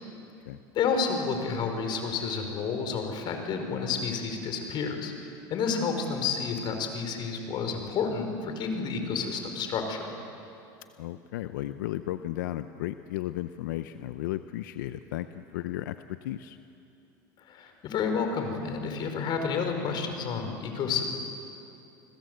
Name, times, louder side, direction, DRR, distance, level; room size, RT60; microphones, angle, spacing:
voice 1, 0.7-5.1 5.5-10.0 17.5-21.0, left 5 dB, 50° left, 5 dB, 4.9 m, -30 dB
voice 2, 11.0-16.6, left 14 dB, 90° left, 11 dB, 0.7 m, -34 dB
29.5 x 21.0 x 8.0 m, 2.7 s
supercardioid pair, 115°, 10 cm